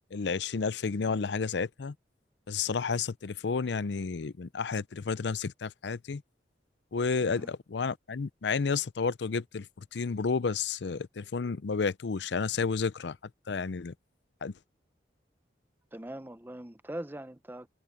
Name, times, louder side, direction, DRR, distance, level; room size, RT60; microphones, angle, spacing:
voice 1, 0.0-1.9 2.5-6.2 6.9-13.2 13.5-13.9 14.4-14.5, left 5 dB, 75° left, 0.5 m, -31 dB
voice 2, 7.2-7.5 15.9-17.7, right 1 dB, 10° right, 0.6 m, -41 dB
head